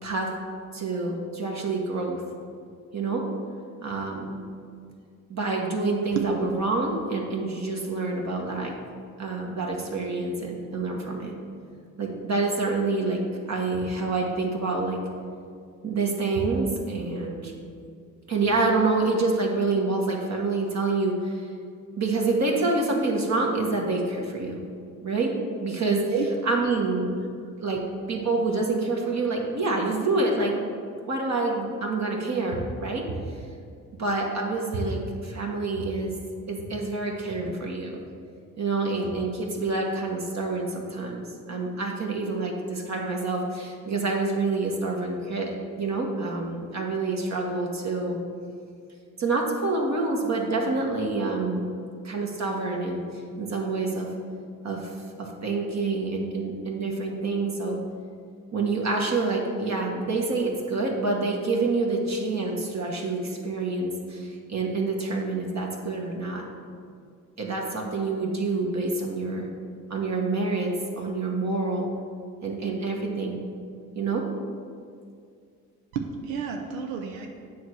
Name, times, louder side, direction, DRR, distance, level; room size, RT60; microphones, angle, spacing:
voice 1, 0.0-0.3 0.7-2.2 2.9-3.3 3.8-4.4 5.3-8.7 9.2-11.3 12.0-13.2 13.5-15.0 15.8-17.5 18.3-21.5 22.0-24.6 25.0-26.1 26.4-27.1 27.6-27.8 28.1-30.6 31.1-33.2 34.0-36.1 36.5-38.0 38.6-48.2 49.2-51.7 52.0-53.0 53.4-54.1 54.6-57.8 58.5-66.5 67.4-69.5 69.9-71.9 72.4-73.4 73.9-74.3, right 3 dB, 45° right, 0 dB, 1.2 m, -27 dB
voice 2, 75.9-77.3, right 7 dB, 85° right, 3 dB, 0.6 m, -30 dB
7.7 x 3.2 x 6.1 m, 2.3 s
hypercardioid pair, 50°, 39 cm